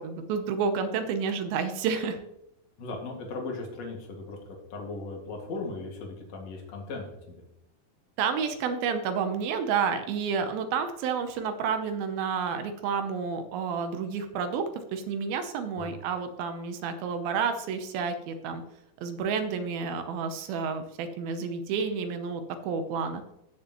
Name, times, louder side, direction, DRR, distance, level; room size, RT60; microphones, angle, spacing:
voice 1, 0.0-2.2 8.2-18.6 19.0-23.2, right 6 dB, 75° right, 8 dB, 2.6 m, -30 dB
voice 2, 2.8-4.4 4.7-7.4 15.7-15.9, left 3 dB, 50° left, 0 dB, 2.8 m, -37 dB
16.5 x 6.7 x 3.0 m, 0.83 s
omnidirectional pair, 4.5 m